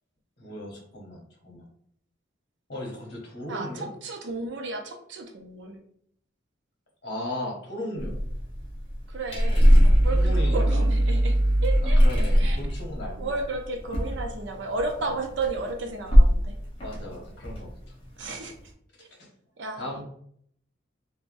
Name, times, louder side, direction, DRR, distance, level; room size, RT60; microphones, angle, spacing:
voice 1, 0.4-1.6 2.7-3.9 7.0-8.2 10.1-10.8 11.8-13.3 16.8-17.7 19.8-20.0, left 1 dB, 55° left, -2 dB, 1.0 m, -36 dB
voice 2, 3.5-5.8 9.1-11.4 11.6-12.6 13.2-16.5 18.2-18.5 19.0-19.1 19.6-20.0, right 3 dB, 65° right, 3 dB, 0.5 m, -33 dB
sound 1, 8.0-14.9 15.2-15.7 16.1-16.5 16.8-18.0, equal, 30° left, 0.6 m, -21 dB
3.3 x 2.1 x 2.5 m, 0.66 s
head